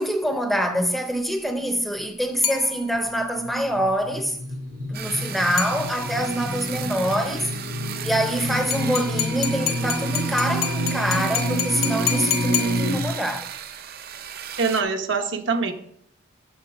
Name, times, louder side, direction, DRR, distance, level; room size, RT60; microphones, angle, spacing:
voice 1, 0.0-4.4 4.9-7.5 8.0-13.5, equal, ahead, 0.6 m, -25 dB
sound 1, 2.4-3.3 5.6-6.3 8.7-13.3, left 9 dB, 90° left, 1.0 m, -30 dB
sound 2, 3.2-12.9, left 1 dB, 90° right, 2.4 m, -29 dB
sound 3, 4.9-14.8, right 9 dB, 50° right, 0.5 m, -35 dB
voice 2, 14.6-15.7, right 4 dB, 65° right, 0.9 m, -24 dB
6.6 x 6.3 x 5.8 m
head